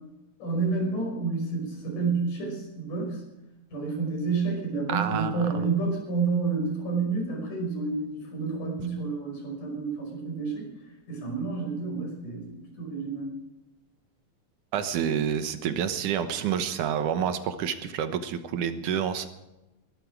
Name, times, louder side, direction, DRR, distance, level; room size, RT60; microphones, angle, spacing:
voice 1, 0.4-3.2 3.7-10.7 11.1-13.3, right 4 dB, 80° left, 0 dB, 7.0 m, -29 dB
voice 2, 4.9-5.6 14.7-19.3, right 8 dB, 85° right, 9 dB, 2.6 m, -28 dB
21.0 x 13.0 x 4.8 m, 0.97 s
omnidirectional pair, 3.5 m